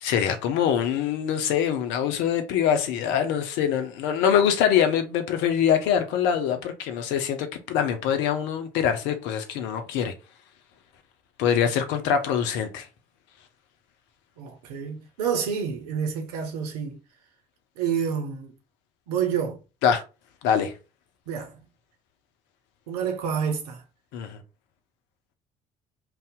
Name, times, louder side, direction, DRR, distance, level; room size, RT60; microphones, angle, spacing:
voice 1, 0.0-10.1 11.4-12.9 19.8-20.0 20.4-20.7 24.1-24.4, left 8 dB, 70° left, 0.7 m, -24 dB
voice 2, 14.4-17.0 17.8-18.5 19.1-19.6 21.3-21.6 22.9-23.8, right 7 dB, 80° right, 0.7 m, -28 dB
2.7 x 2.3 x 3.6 m
hypercardioid pair, 55°, 20 cm